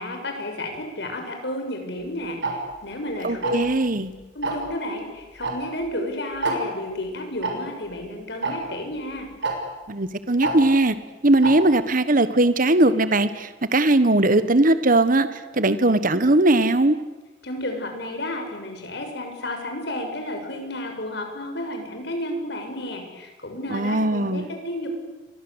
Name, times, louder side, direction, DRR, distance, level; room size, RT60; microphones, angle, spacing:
voice 1, 0.0-3.5 4.3-9.3 17.4-24.9, left 1 dB, 65° left, 4 dB, 6.8 m, -32 dB
Tick-tock, 2.4-2.5 3.4-3.7 4.4-4.7 5.4-5.5 5.8-5.9 6.4-6.6 7.4-7.5 8.4-8.5 9.4-9.5 10.4-10.5 11.4-11.5, right 3 dB, 70° right, 6.4 m, -25 dB
voice 2, 3.2-4.1 9.9-10.9 11.2-15.3 15.6-17.0 23.7-24.5, right 2 dB, 45° right, 12 dB, 1.5 m, -19 dB
30.0 x 24.0 x 8.2 m, 1.1 s
head